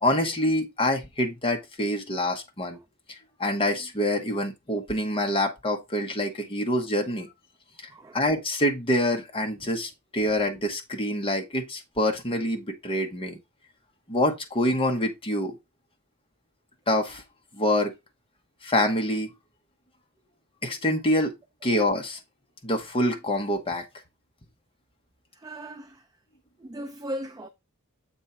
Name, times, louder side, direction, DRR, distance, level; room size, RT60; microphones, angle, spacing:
voice 1, 0.0-2.8 3.1-7.3 8.1-13.4 14.1-15.6 16.9-17.2 17.5-17.9 18.6-19.3 20.6-21.3 21.6-22.2 22.6-23.8, left 1 dB, 25° left, 1.1 m, -26 dB
voice 2, 25.3-26.0 26.6-27.5, equal, 15° right, 0.4 m, -37 dB
7.3 x 3.5 x 4.3 m
head